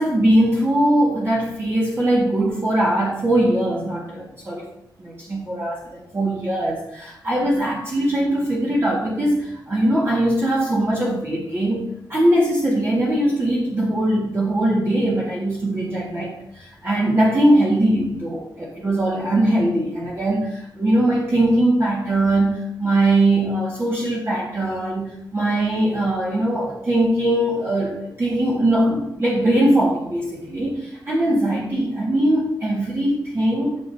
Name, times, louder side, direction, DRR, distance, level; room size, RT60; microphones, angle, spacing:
voice 1, 0.0-4.7 5.0-33.8, right 1 dB, 30° right, -5 dB, 1.7 m, -21 dB
12.5 x 6.1 x 2.7 m, 0.79 s
wide cardioid pair, 130°, 8 cm